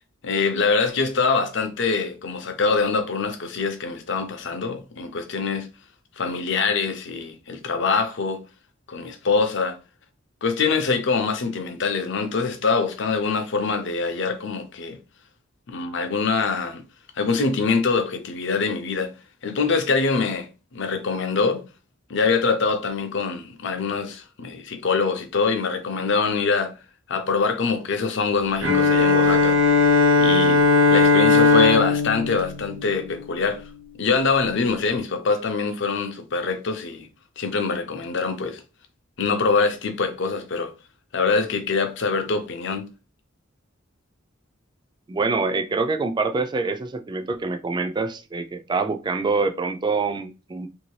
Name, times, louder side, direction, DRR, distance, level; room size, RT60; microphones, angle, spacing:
voice 1, 0.2-5.7 6.2-8.4 8.9-9.8 10.4-15.0 15.7-16.8 17.2-19.1 19.4-21.6 22.1-26.7 27.1-29.6 30.2-30.6 30.9-33.6 34.0-37.1 37.4-38.6 39.2-40.7 41.1-42.9, left 4 dB, 60° left, 0.6 m, -24 dB
Bowed string instrument, 28.6-33.5, left 3 dB, 70° right, 0.7 m, -18 dB
voice 2, 45.1-50.7, right 4 dB, 20° right, 0.3 m, -25 dB
3.0 x 2.7 x 3.1 m
head